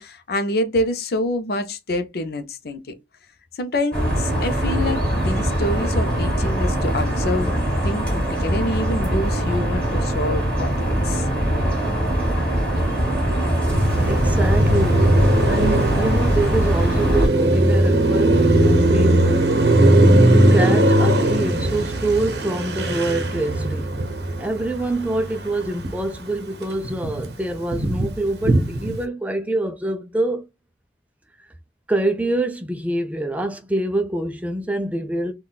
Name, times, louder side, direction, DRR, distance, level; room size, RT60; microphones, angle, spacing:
voice 1, 0.0-2.9 3.5-7.6 7.8-10.8 11.0-11.3, left 1 dB, 60° left, 0.5 m, -26 dB
sound 1, 3.9-17.3, equal, 10° left, 1.5 m, -22 dB
Car passing by, 13.7-26.2 26.5-29.0, right 1 dB, 65° right, 0.7 m, -19 dB
voice 2, 14.0-15.1 15.5-19.7 20.3-24.0 24.4-30.4 31.9-35.3, right 2 dB, 10° right, 0.3 m, -25 dB
3.8 x 2.2 x 2.3 m
head